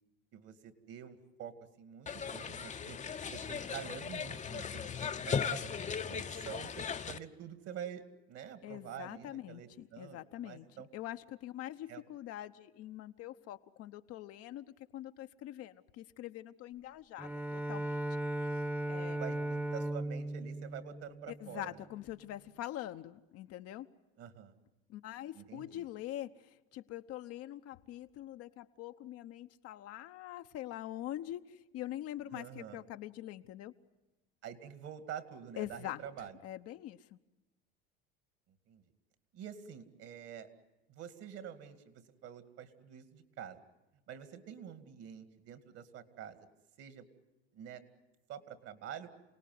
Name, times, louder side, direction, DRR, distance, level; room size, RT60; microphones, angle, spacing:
voice 1, 0.3-3.0 3.3-5.7 6.1-10.9 11.9-12.0 19.1-21.7 24.2-24.5 25.4-25.8 32.3-32.8 34.4-36.3 38.7-38.8 39.3-40.5 40.9-43.6 44.1-46.5 46.8-47.0 47.5-47.8 48.3-49.1, right 9 dB, 55° right, 10 dB, 2.4 m, -47 dB
sound 1, 2.1-7.2, left 6 dB, 25° left, 0.9 m, -38 dB
voice 2, 8.6-10.7 10.9-18.0 18.4-18.6 18.9-19.2 21.3-23.9 24.9-33.7 35.6-37.2, left 13 dB, 55° left, 9 dB, 1.0 m, -44 dB
Bowed string instrument, 17.2-21.8, right 1 dB, 5° right, 1.1 m, -37 dB
28.0 x 18.5 x 9.4 m, 1.1 s
hypercardioid pair, 85°, 29 cm